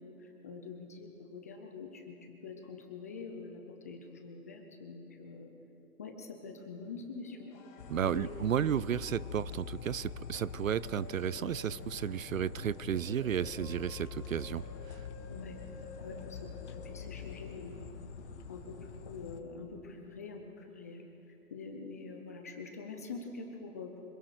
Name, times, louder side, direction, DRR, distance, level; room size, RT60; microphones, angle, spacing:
voice 1, 0.0-5.5 6.0-8.7 15.3-15.6 16.0-18.1 18.5-24.1, left 4 dB, 10° left, 3 dB, 0.6 m, -45 dB
sound 1, 7.1-17.6, left 3 dB, 25° left, 4.9 m, -54 dB
sound 2, 7.8-19.4, left 6 dB, 45° left, 1.6 m, -45 dB
voice 2, 7.9-14.6, right 9 dB, 55° right, 20 dB, 0.6 m, -33 dB
25.5 x 22.5 x 6.7 m, 2.8 s
hypercardioid pair, 145°, 49 cm